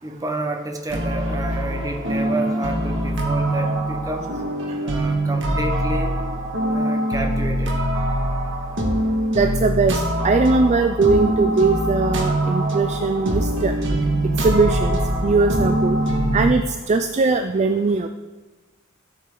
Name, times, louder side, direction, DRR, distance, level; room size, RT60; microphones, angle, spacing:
voice 1, 0.0-4.3 4.8-6.2 6.7-7.8, right 2 dB, 15° right, 3 dB, 1.1 m, -30 dB
sound 1, 0.9-16.5, right 1 dB, 65° right, 1.7 m, -23 dB
voice 2, 9.3-13.7 14.4-16.0 16.3-18.1, right 3 dB, 35° right, 8 dB, 0.4 m, -20 dB
13.5 x 8.0 x 3.8 m, 1.2 s
head